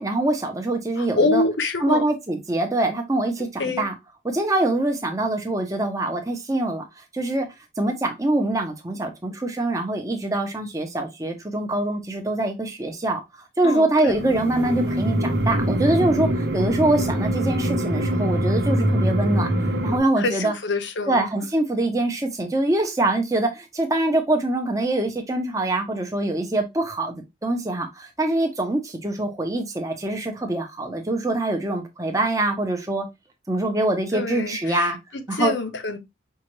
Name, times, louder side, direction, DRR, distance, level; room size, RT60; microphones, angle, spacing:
voice 1, 0.0-1.4 1.8-3.9 4.2-6.8 7.1-7.5 7.8-13.2 13.6-19.5 19.8-20.5 21.1-33.1 33.5-35.0 35.3-35.5, right 2 dB, 15° right, 0.8 m, -24 dB
voice 2, 1.0-2.0 3.6-3.8 13.6-14.1 20.2-21.3 34.1-36.0, left 3 dB, 75° left, 0.9 m, -26 dB
sound 1, 14.1-20.0, right 1 dB, 70° right, 0.9 m, -23 dB
5.6 x 2.5 x 3.1 m
head